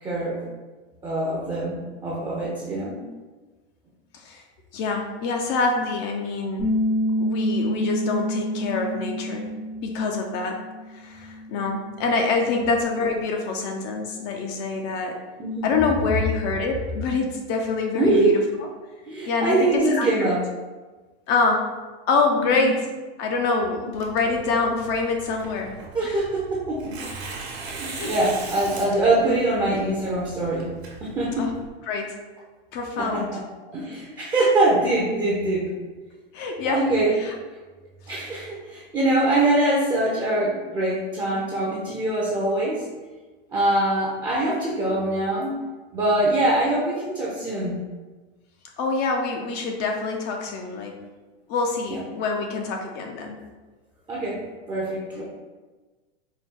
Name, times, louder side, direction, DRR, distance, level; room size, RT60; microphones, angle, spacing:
voice 1, 0.0-0.4 1.0-3.0 12.5-12.6 15.4-15.7 17.9-18.4 19.0-20.4 22.4-22.6 23.8-23.9 25.9-26.9 27.6-30.7 31.0-31.5 33.0-33.3 33.6-35.7 36.6-37.1 38.1-42.8 43.5-45.6 45.9-47.8 51.9-52.0 54.1-55.2, right 2 dB, 15° right, -5 dB, 0.5 m, -23 dB
voice 2, 4.7-6.7 7.2-9.5 9.8-10.6 10.9-15.2 15.6-18.7 19.3-20.3 21.3-21.7 22.1-22.8 23.2-25.7 26.0-26.2 27.9-28.2 31.4-31.5 31.9-32.2 32.7-33.3 36.3-36.8 37.1-37.3 48.8-51.0 51.5-53.4, left 4 dB, 35° left, 2 dB, 0.4 m, -25 dB
Bass guitar, 6.6-10.9 11.2-12.8, equal, 85° left, 1.3 m, -28 dB
Tearing, 23.9-31.7, right 4 dB, 75° right, 1.2 m, -39 dB
4.3 x 2.2 x 3.6 m, 1.3 s
supercardioid pair, 135°, 32 cm